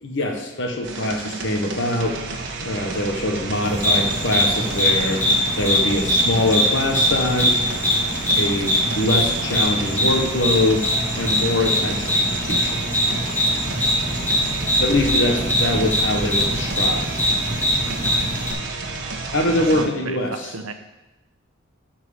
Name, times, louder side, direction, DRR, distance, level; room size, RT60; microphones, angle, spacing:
voice 1, 0.0-2.2 2.6-5.3 5.6-7.6 8.3-10.8 11.2-12.8 14.8-17.1 19.3-20.5, left 1 dB, 60° left, 3 dB, 1.2 m, -23 dB
sound 1, 0.8-19.9, right 3 dB, 60° right, 1.3 m, -31 dB
sound 2, 3.6-18.5, left 1 dB, 10° left, 2.1 m, -22 dB
voice 2, 17.9-19.2 19.7-20.7, right 3 dB, 85° right, 8 dB, 0.9 m, -35 dB
12.5 x 4.6 x 7.1 m, 1.0 s
head